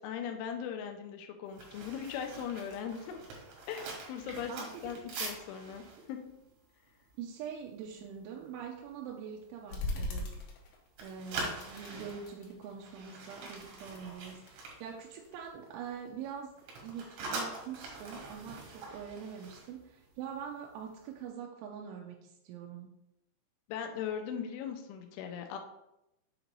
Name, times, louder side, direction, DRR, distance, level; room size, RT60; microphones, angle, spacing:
voice 1, 0.0-3.2 3.7-6.3 23.7-25.6, left 8 dB, 90° left, 5 dB, 3.1 m, -39 dB
sound 1, 1.5-7.6 8.0-8.2 8.6-8.9 9.4-10.6 10.9-15.6 15.9-20.4 20.7-20.9, right 3 dB, 70° right, 3.6 m, -44 dB
voice 2, 4.5-5.0 7.2-10.3 11.0-16.5 16.8-22.9, right 7 dB, 90° right, 0 dB, 3.0 m, -44 dB
sound 2, 9.7-11.0 11.3-12.9 13.3-14.6 15.1-16.3, left 2 dB, 70° left, 3.0 m, -41 dB
7.4 x 3.0 x 5.2 m, 0.87 s
omnidirectional pair, 5.4 m